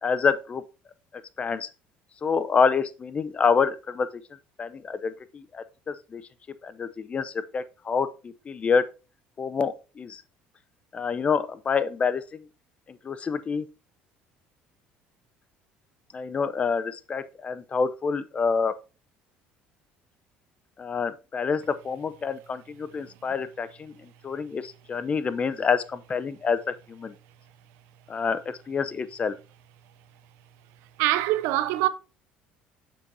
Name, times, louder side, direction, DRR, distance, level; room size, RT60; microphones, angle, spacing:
voice 1, 0.0-0.6 1.4-1.7 2.2-4.1 4.6-6.2 6.6-8.8 9.4-10.2 10.9-12.4 12.9-13.6 16.1-18.7 20.8-27.1 28.1-29.3, left 5 dB, 35° left, 0.6 m, -27 dB
voice 2, 31.0-31.9, right 15 dB, 80° right, 0.5 m, -24 dB
7.4 x 6.8 x 2.7 m
supercardioid pair, 95°, 4 cm